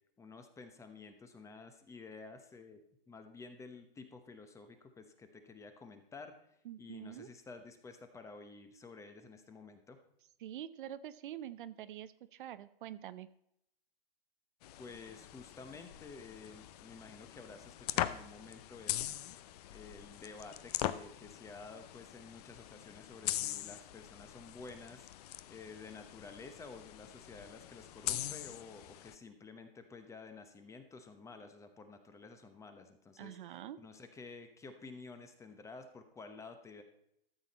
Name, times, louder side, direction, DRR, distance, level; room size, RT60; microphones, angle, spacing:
voice 1, 0.2-2.8 3.1-6.5 6.8-10.0 14.8-19.2 19.7-25.1 25.5-36.8, left 4 dB, 10° left, 8 dB, 0.9 m, -51 dB
voice 2, 6.6-7.3 10.4-13.3 33.2-33.8, right 11 dB, 60° right, 14 dB, 0.7 m, -46 dB
sound 1, 14.6-29.2, left 13 dB, 45° left, 0.6 m, -42 dB
13.5 x 7.3 x 4.1 m, 0.75 s
hypercardioid pair, 140°, 29 cm